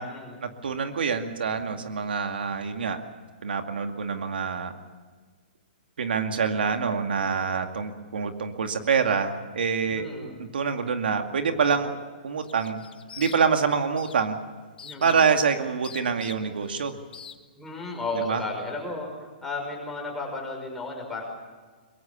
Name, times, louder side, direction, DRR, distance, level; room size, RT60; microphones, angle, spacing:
voice 1, 0.4-3.0 3.4-4.7 6.0-10.1 10.4-12.0 12.2-12.8 13.2-14.4 15.0-16.9 18.1-18.4, right 6 dB, 85° right, 6 dB, 2.2 m, -26 dB
voice 2, 9.9-10.4 14.8-15.2 17.6-21.2, left 2 dB, 5° left, -1 dB, 5.6 m, -34 dB
sound 1, 12.4-13.7 14.0-14.3 14.8-15.4 15.8-16.7 17.1-17.4, left 7 dB, 90° left, 1.7 m, -43 dB
23.0 x 22.0 x 7.0 m, 1.5 s
hypercardioid pair, 160°, 5 cm